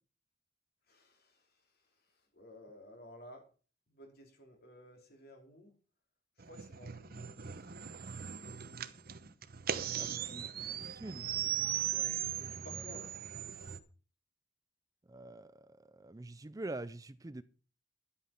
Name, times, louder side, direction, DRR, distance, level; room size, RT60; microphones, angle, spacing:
voice 1, 0.9-1.5 2.3-3.4 3.9-5.7 6.4-8.0 9.9-10.5 11.9-13.1, left 1 dB, 55° left, 3.2 m, -55 dB
sound 1, 6.4-13.8, right 10 dB, 50° right, 0.9 m, -38 dB
voice 2, 10.0-10.5 10.8-11.3 15.1-17.4, right 2 dB, 20° right, 0.4 m, -45 dB
11.5 x 8.5 x 5.8 m
head